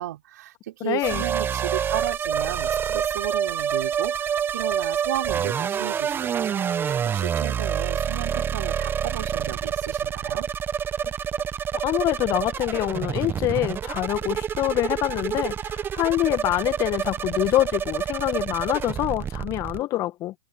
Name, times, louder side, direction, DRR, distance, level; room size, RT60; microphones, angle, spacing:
voice 1, 0.0-10.5, right 13 dB, 60° right, 4.3 m, -34 dB
voice 2, 0.8-1.2 11.0-11.1 11.8-20.3, left 15 dB, 35° left, 1.8 m, -25 dB
sound 1, 1.0-19.8, right 8 dB, 20° right, 1.3 m, -27 dB
hypercardioid pair, 110°, 10 cm